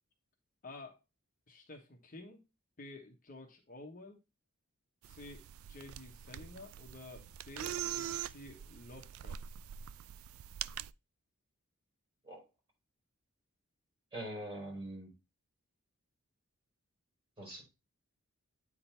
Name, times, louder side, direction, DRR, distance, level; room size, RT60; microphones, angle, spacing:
voice 1, 0.6-1.0 1.5-2.4 2.8-4.2 5.1-9.4, left 2 dB, 40° left, 2 dB, 1.1 m, -51 dB
sound 1, 5.0-10.9, right 10 dB, 70° right, 0.3 m, -43 dB
voice 2, 14.1-15.1 17.4-17.6, right 1 dB, 25° right, -2 dB, 3.7 m, -43 dB
9.0 x 3.9 x 4.2 m, 0.26 s
head